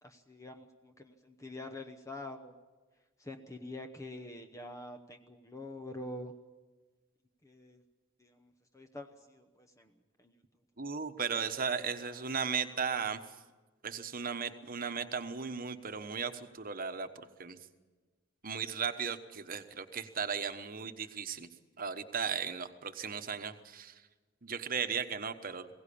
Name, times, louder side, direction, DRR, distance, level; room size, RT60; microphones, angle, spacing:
voice 1, 0.0-2.5 3.2-6.3 7.4-7.8 8.2-9.9 10.2-10.3 11.4-11.5 11.9-12.2, left 1 dB, 15° left, 6 dB, 0.9 m, -46 dB
voice 2, 10.8-13.2 13.8-17.6 18.4-21.5 21.8-24.0 24.4-25.7, right 6 dB, 45° right, 9 dB, 1.2 m, -36 dB
21.5 x 17.0 x 8.6 m, 1.3 s
head